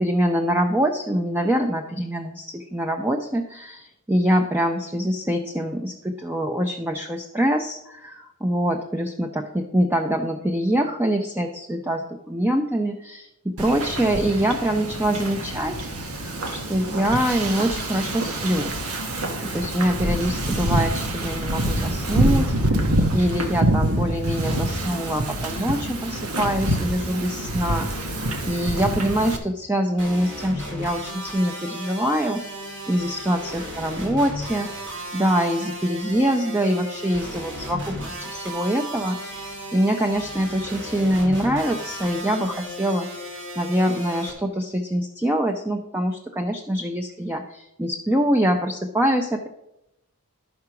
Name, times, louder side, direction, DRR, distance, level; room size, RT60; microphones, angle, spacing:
voice 1, 0.0-15.8 16.1-18.8 19.5-22.9 23.1-32.4 32.9-43.1 43.6-49.5, equal, 10° right, 4 dB, 0.5 m, -24 dB
Wind / Ocean, 13.6-29.4, right 1 dB, 75° right, 1.2 m, -26 dB
sound 1, 30.0-44.3, equal, 60° right, 2.2 m, -35 dB
12.0 x 4.8 x 5.8 m, 0.87 s
head